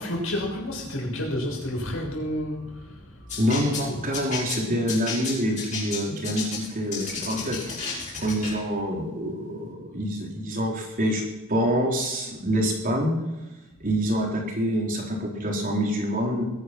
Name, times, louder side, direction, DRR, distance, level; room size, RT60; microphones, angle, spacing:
voice 1, 0.0-3.4 3.9-4.0, left 1 dB, 75° left, -2 dB, 6.7 m, -30 dB
sound 1, 3.3-8.6, left 4 dB, 35° left, 7.9 m, -33 dB
voice 2, 3.4-11.2 11.5-13.1 13.8-16.4, equal, 40° right, -1 dB, 4.2 m, -26 dB
21.0 x 10.0 x 6.2 m, 1.1 s
head